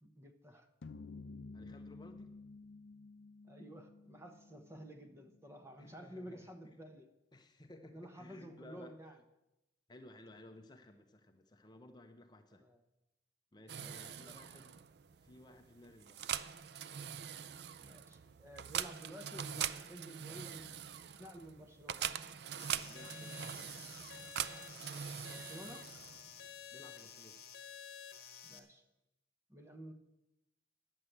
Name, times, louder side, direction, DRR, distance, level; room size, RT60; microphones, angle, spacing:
voice 1, 0.0-0.7 3.5-7.1 7.8-9.2 12.6-12.8 13.8-14.4 17.8-20.8 21.2-22.1 25.2-25.9 28.4-28.8 29.5-29.9, equal, 15° right, 6 dB, 1.0 m, -52 dB
sound 1, 0.8-5.2, left 3 dB, 80° left, 0.6 m, -52 dB
voice 2, 1.5-2.3 5.8-6.8 7.3-8.9 9.9-12.6 13.5-14.8 15.2-16.2 22.7-23.8 26.7-27.4, left 1 dB, 25° left, 5 dB, 0.6 m, -57 dB
sound 2, 13.7-26.4, right 9 dB, 60° right, 0.4 m, -43 dB
sound 3, 22.6-28.6, left 8 dB, 55° left, 1.2 m, -52 dB
9.7 x 7.6 x 7.8 m, 0.94 s
head